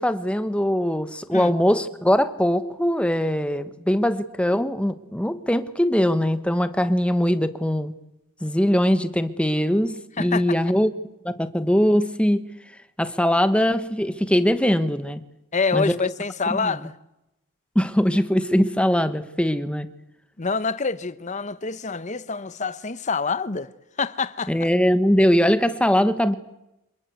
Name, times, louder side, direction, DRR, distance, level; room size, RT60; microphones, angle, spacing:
voice 1, 0.0-7.9 8.4-10.9 11.2-12.5 13.0-15.2 15.7-15.9 16.5-16.7 17.7-19.9 24.5-26.4, equal, 5° left, 1.2 m, -21 dB
voice 2, 15.5-16.9 20.4-23.7 24.0-24.7, left 4 dB, 35° left, 0.9 m, -26 dB
27.0 x 22.0 x 8.1 m
head